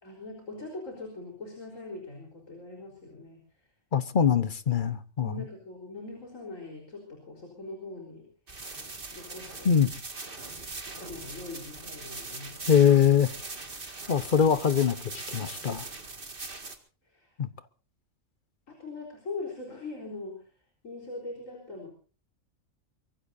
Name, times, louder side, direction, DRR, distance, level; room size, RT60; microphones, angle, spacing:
voice 1, 0.0-3.4 5.2-8.2 9.1-9.8 10.9-12.7 16.5-16.6 17.0-17.3 18.7-20.5 20.8-21.9, left 2 dB, 70° left, 4.5 m, -41 dB
voice 2, 3.9-5.4 9.6-9.9 12.7-13.3 14.1-15.9 17.4-17.5, left 8 dB, 40° left, 1.0 m, -23 dB
sound 1, 8.5-16.7, right 3 dB, 40° right, 2.2 m, -41 dB
24.0 x 22.5 x 2.6 m
omnidirectional pair, 1.4 m